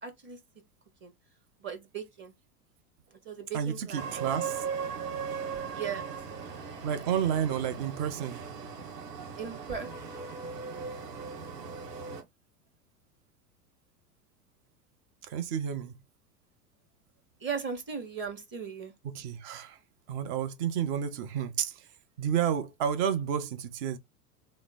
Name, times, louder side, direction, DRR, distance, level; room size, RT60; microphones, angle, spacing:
voice 1, 0.0-0.4 1.0-1.1 1.6-2.3 3.2-4.0 5.7-6.0 9.4-9.9 17.4-18.9, right 6 dB, 25° right, 1.1 m, -37 dB
voice 2, 3.5-4.6 6.8-8.4 15.3-15.9 19.1-19.8 20.1-21.7 22.2-24.0, right 8 dB, 45° right, 0.7 m, -30 dB
sound 1, 3.9-12.2, right 6 dB, 85° right, 1.1 m, -38 dB
3.1 x 2.1 x 3.8 m
hypercardioid pair, 90°, 47 cm